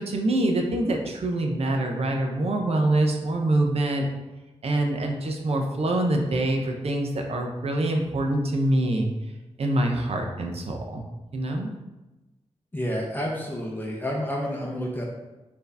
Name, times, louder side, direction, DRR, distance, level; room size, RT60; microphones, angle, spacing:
voice 1, 0.0-4.1 4.6-9.1 9.6-11.0 11.3-11.7, right 1 dB, 65° right, 2 dB, 0.6 m, -25 dB
voice 2, 12.7-15.0, equal, 15° left, -2 dB, 0.6 m, -29 dB
4.4 x 2.7 x 3.4 m, 1.1 s
wide cardioid pair, 95°, 11 cm